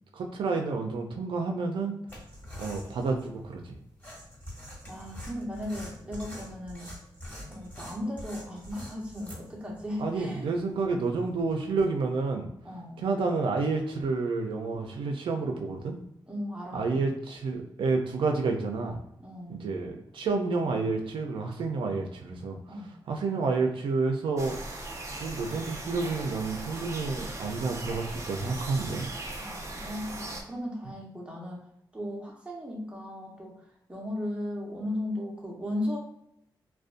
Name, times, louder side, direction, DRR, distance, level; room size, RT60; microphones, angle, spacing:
voice 1, 0.1-2.0 2.6-3.8 10.0-12.5 13.0-16.0 16.7-19.0 19.5-22.6 23.1-24.8 25.2-29.1, right 4 dB, 85° right, 2 dB, 0.4 m, -29 dB
sound 1, 2.1-11.9, equal, 20° left, 1.4 m, -45 dB
voice 2, 4.9-7.0 7.5-10.5 12.6-13.0 16.3-17.1 19.2-19.7 22.7-22.9 29.4-31.7 31.9-33.5 33.9-36.0, left 1 dB, 15° right, -3 dB, 0.9 m, -36 dB
sound 2, 24.4-30.4, right 2 dB, 35° right, 0.6 m, -39 dB
2.5 x 2.1 x 2.4 m, 0.79 s
cardioid pair, 65°, 8 cm